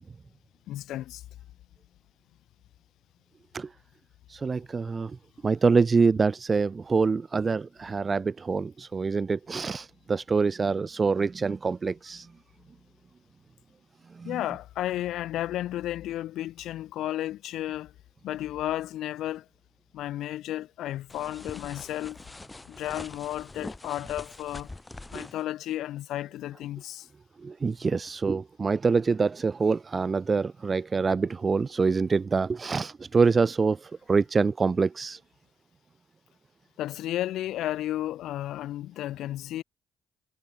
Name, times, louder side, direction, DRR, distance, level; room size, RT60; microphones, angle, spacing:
voice 1, 0.7-1.2 14.2-17.9 18.2-19.5 19.9-22.2 22.7-24.7 25.1-27.1 36.8-39.6, left 13 dB, 75° left, 3.0 m, -33 dB
voice 2, 4.3-5.2 5.4-12.3 14.1-14.4 25.1-25.3 27.4-35.2, right 4 dB, 40° right, 0.8 m, -25 dB
sound 1, 21.1-25.4, left 2 dB, 20° left, 1.7 m, -44 dB
hypercardioid pair, 45°, 0 cm